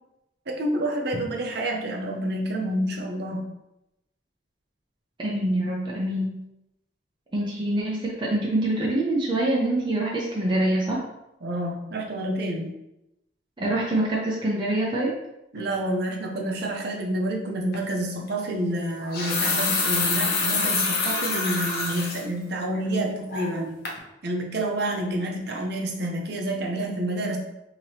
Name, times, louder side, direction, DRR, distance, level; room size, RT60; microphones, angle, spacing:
voice 1, 0.5-3.5 11.4-12.8 15.5-23.8 24.2-27.4, right 1 dB, 65° right, 1 dB, 0.8 m, -28 dB
voice 2, 5.2-6.4 7.3-11.0 13.6-15.1, right 1 dB, 25° right, -4 dB, 0.6 m, -25 dB
sound 1, 17.7-17.9 18.9-22.2 22.7-22.8 23.3-23.6 23.9-24.0, left 3 dB, 60° left, 0.8 m, -26 dB
4.6 x 2.9 x 2.8 m, 0.89 s
head